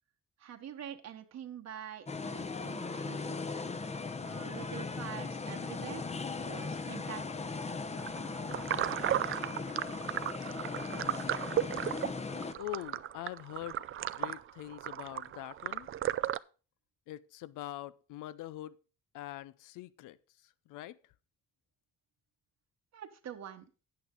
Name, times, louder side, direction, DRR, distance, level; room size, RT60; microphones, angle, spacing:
voice 1, 0.4-3.4 4.2-7.7 22.9-23.7, right 9 dB, 60° right, 1.1 m, -46 dB
sound 1, 2.1-12.5, left 4 dB, 20° left, 0.7 m, -38 dB
sound 2, 8.0-16.4, right 11 dB, 45° right, 0.4 m, -35 dB
voice 2, 12.6-15.9 17.1-18.8 19.1-20.2 20.7-21.0, left 15 dB, 90° left, 0.5 m, -43 dB
9.2 x 8.7 x 3.7 m
cardioid pair, 90°, 30 cm